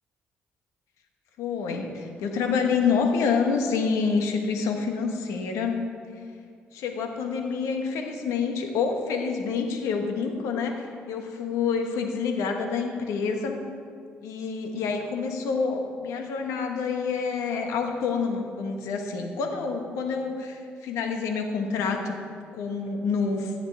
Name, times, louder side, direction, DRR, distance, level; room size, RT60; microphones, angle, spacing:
voice 1, 1.4-5.8 6.1-6.2 6.7-13.6 14.2-22.2 22.5-23.5, left 5 dB, 80° left, 4 dB, 1.4 m, -27 dB
17.5 x 10.5 x 3.5 m, 2.2 s
hypercardioid pair, 50°, 5 cm